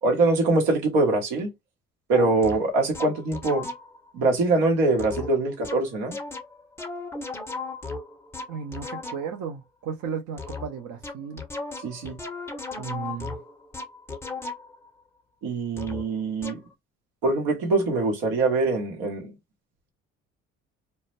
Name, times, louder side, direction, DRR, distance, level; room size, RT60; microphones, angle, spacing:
voice 1, 0.0-1.5 2.1-3.7 4.1-6.1 11.8-12.2 12.8-13.4 15.4-16.6 17.2-19.3, right 3 dB, 85° right, 0.9 m, -23 dB
sound 1, 2.1-4.1 5.0-9.5 10.4-14.9 15.8-16.1 16.4-16.7, left 3 dB, 5° left, 0.5 m, -36 dB
voice 2, 8.5-11.4, right 6 dB, 60° right, 0.6 m, -34 dB
2.1 x 2.1 x 2.9 m
supercardioid pair, 60°, 36 cm